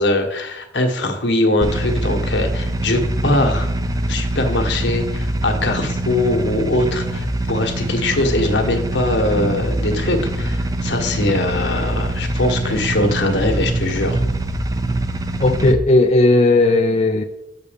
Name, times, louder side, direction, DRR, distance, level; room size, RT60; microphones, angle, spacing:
voice 1, 0.0-3.7 4.1-14.2, left 1 dB, 75° left, 4 dB, 1.4 m, -21 dB
sound 1, 1.6-15.7, right 1 dB, 20° right, 0.5 m, -23 dB
voice 2, 15.4-17.2, left 2 dB, 35° left, 5 dB, 0.4 m, -15 dB
8.1 x 6.6 x 5.2 m, 0.91 s
head